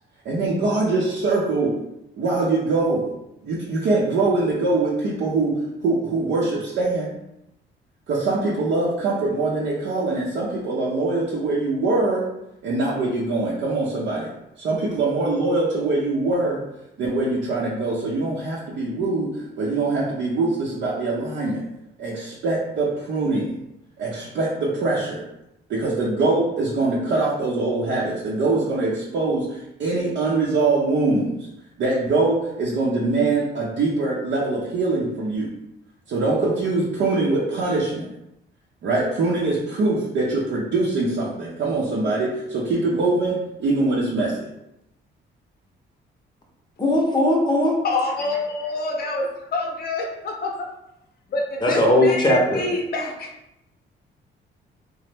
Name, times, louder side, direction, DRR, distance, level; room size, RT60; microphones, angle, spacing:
voice 1, 0.2-1.7 2.2-3.1 3.4-7.1 8.1-12.2 12.6-14.3 14.6-16.6 17.0-21.6 22.0-23.5 24.0-25.2 25.7-31.5 31.8-35.5 36.1-38.1 38.8-44.5, right 3 dB, 65° right, -5 dB, 0.7 m, -23 dB
voice 2, 46.8-47.7 51.6-52.6, left 1 dB, 20° left, -1 dB, 0.7 m, -18 dB
voice 3, 47.8-50.5 51.3-53.3, left 2 dB, 50° left, 1 dB, 0.7 m, -27 dB
2.9 x 2.0 x 3.3 m, 0.86 s
cardioid pair, 90°, 20 cm